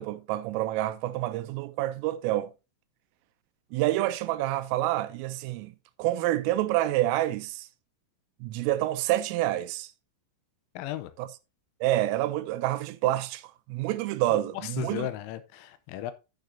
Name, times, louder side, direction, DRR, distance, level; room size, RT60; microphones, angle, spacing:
voice 1, 0.0-2.5 3.7-7.7 8.4-9.9 11.2-11.3 11.8-15.1, right 15 dB, 85° right, 3.2 m, -28 dB
voice 2, 10.8-11.1 14.3-16.1, left 13 dB, 90° left, 3.4 m, -35 dB
13.0 x 6.7 x 2.7 m
omnidirectional pair, 5.9 m